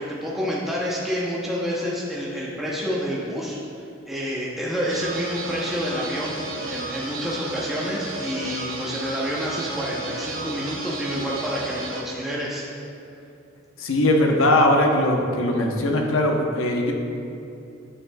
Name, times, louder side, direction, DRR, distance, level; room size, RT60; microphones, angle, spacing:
voice 1, 0.0-6.4 6.7-12.7, equal, ahead, -6 dB, 0.7 m, -28 dB
sound 1, 4.9-12.0, right 2 dB, 80° right, 0.9 m, -33 dB
voice 2, 13.8-16.9, left 1 dB, 80° left, 1 dB, 0.8 m, -20 dB
8.7 x 7.0 x 2.3 m, 2.7 s
head